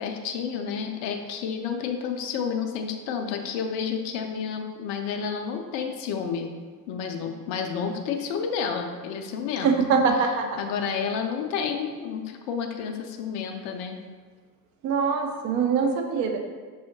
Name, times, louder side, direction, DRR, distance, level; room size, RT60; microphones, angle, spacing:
voice 1, 0.0-6.5 6.9-9.7 10.6-14.0, left 6 dB, 35° left, 4 dB, 0.4 m, -30 dB
voice 2, 9.6-10.5 14.8-16.4, right 5 dB, 35° right, 3 dB, 0.6 m, -23 dB
5.5 x 2.8 x 2.7 m, 1.5 s
figure-of-eight pair, 70°, 50 cm